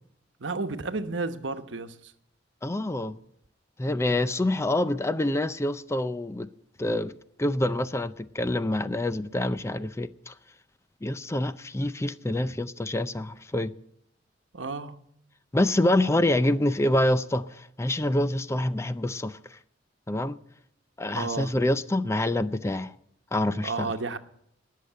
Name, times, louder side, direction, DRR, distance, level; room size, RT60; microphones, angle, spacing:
voice 1, 0.4-2.1 12.3-12.6 14.5-15.0 21.1-21.5 23.6-24.2, right 3 dB, 90° right, 1.0 m, -32 dB
voice 2, 2.6-3.2 3.8-6.5 6.8-7.1 7.4-10.3 11.0-13.7 15.5-19.6 20.1-20.4 21.0-22.9 23.3-23.9, left 1 dB, 15° left, 0.5 m, -26 dB
18.5 x 6.7 x 8.8 m
head